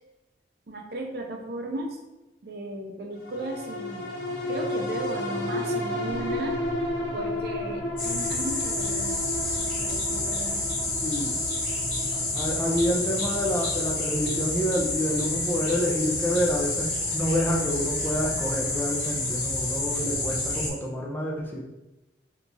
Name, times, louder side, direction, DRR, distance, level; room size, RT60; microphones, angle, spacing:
voice 1, 0.7-2.0 2.4-4.1 4.5-6.6 7.1-9.2 9.8-10.6, right 1 dB, 55° right, 2 dB, 0.5 m, -35 dB
sound 1, 3.2-17.9 18.3-18.4, left 1 dB, 65° left, 0.7 m, -34 dB
sound 2, 8.0-20.7, left 2 dB, 45° left, 1.2 m, -29 dB
voice 2, 11.0-11.4 12.1-21.6, equal, 10° left, -2 dB, 0.4 m, -28 dB
2.8 x 2.3 x 3.9 m, 1.0 s
head